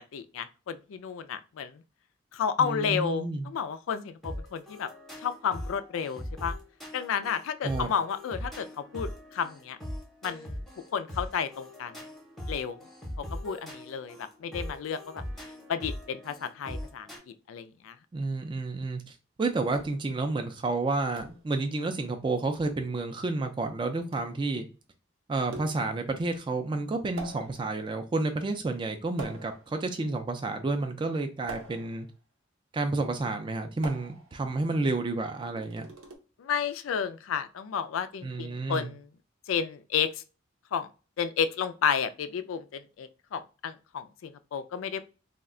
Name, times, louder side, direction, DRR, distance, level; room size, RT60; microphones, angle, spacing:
voice 1, 0.1-1.8 2.3-4.9 5.2-6.6 6.9-8.7 8.9-9.8 10.2-10.6 10.9-11.9 12.5-12.8 13.4-15.2 15.7-17.1 17.5-17.9 36.4-39.0 39.5-40.1 40.7-40.9 41.2-45.1, left 7 dB, 85° left, 0.3 m, -31 dB
voice 2, 2.6-3.5 7.6-7.9 18.1-24.7 25.3-32.1 32.7-35.9 38.2-38.9, right 3 dB, 25° right, 0.3 m, -30 dB
sound 1, 4.2-17.2, equal, ahead, 0.7 m, -40 dB
sound 2, 19.7-20.2 21.2-21.5 22.5-22.8 24.1-24.4 25.5-26.0 27.2-27.8 29.2-29.8 31.5-32.1 33.8-34.4 35.4-36.2, right 3 dB, 85° right, 0.7 m, -44 dB
2.3 x 2.1 x 3.6 m
head